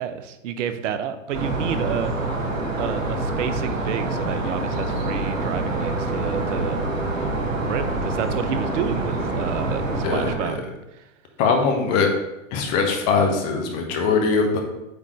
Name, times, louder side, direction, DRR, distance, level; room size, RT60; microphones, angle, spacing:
voice 1, 0.0-2.1 2.8-11.0, right 8 dB, 70° right, 10 dB, 0.7 m, -30 dB
sound 1, 1.3-10.3, right 2 dB, 90° right, 1.5 m, -26 dB
voice 2, 10.0-10.6 11.4-12.1 12.5-14.6, left 4 dB, 40° left, 2 dB, 1.3 m, -21 dB
8.2 x 3.8 x 3.1 m, 0.93 s
hypercardioid pair, 110°, 39 cm